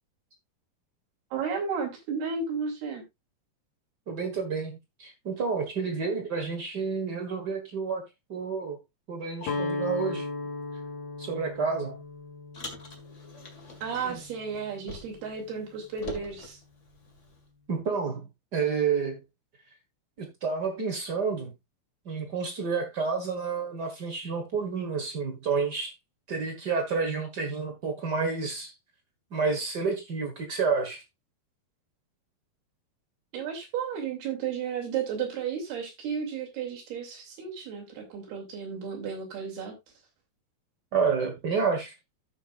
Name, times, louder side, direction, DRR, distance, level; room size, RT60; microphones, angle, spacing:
voice 1, 1.3-3.0 13.8-16.6 33.3-39.7, right 6 dB, 90° right, 4.8 m, -33 dB
voice 2, 4.1-8.0 8.3-8.8 9.1-10.2 11.2-12.0 13.9-14.2 17.7-18.3 18.5-19.2 20.2-21.5 22.0-25.9 26.3-28.7 29.3-31.0 40.9-41.9, right 5 dB, 55° right, 1.1 m, -29 dB
Guitar, 9.4-15.5, left 2 dB, 70° left, 3.6 m, -37 dB
Car, 12.5-15.4 15.6-17.4, left 2 dB, 40° left, 1.0 m, -45 dB
14.5 x 6.0 x 2.5 m
omnidirectional pair, 4.4 m